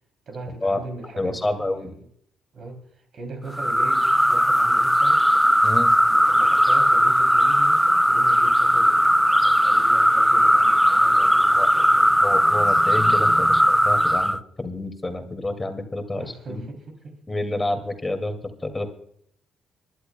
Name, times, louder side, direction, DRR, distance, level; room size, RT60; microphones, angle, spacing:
voice 1, 0.3-2.0 2.5-2.8 3.1-5.2 6.0-12.2 13.4-13.5 16.2-17.2, right 2 dB, 55° right, 3.1 m, -39 dB
voice 2, 1.2-1.9 5.6-5.9 11.5-11.7 12.2-16.6 17.3-18.9, left 2 dB, 15° left, 2.3 m, -28 dB
sound 1, 3.5-14.4, equal, ahead, 0.4 m, -18 dB
25.5 x 11.5 x 2.3 m
cardioid pair, 90°, 0 cm